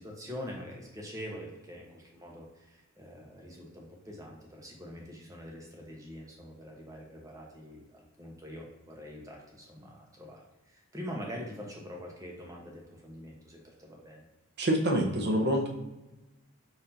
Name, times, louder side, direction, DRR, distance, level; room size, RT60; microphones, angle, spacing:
voice 1, 0.0-14.2, equal, 15° right, -1 dB, 0.8 m, -44 dB
voice 2, 14.6-15.7, right 1 dB, 55° right, 2 dB, 0.7 m, -26 dB
5.4 x 2.7 x 2.8 m, 1.0 s
head